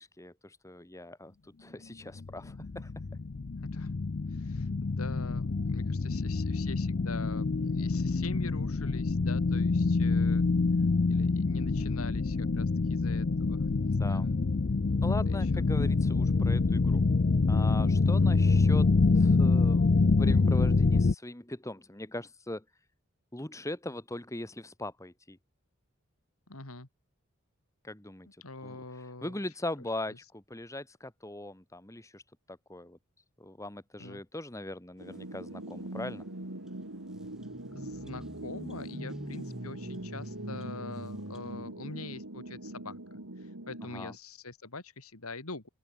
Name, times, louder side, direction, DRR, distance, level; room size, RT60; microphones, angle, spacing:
voice 1, 0.0-1.3 1.6-2.9 13.9-14.3 15.0-17.1 17.5-19.9 20.2-22.6 23.3-25.4 27.8-28.3 28.6-28.8 29.2-32.2 32.5-33.0 33.4-36.3 43.9-44.1, left 1 dB, 15° left, 1.7 m, -40 dB
sound 1, 2.2-21.1, left 3 dB, 50° left, 0.5 m, -26 dB
voice 2, 4.3-10.5 11.1-14.4 15.3-15.6 26.5-26.9 28.4-29.3 34.0-34.2 37.7-45.7, left 3 dB, 85° left, 2.9 m, -44 dB
sound 2, 35.0-44.2, right 1 dB, 80° right, 2.9 m, -42 dB
sound 3, 36.7-36.8 37.0-41.7, equal, 5° right, 5.2 m, -46 dB
open air
head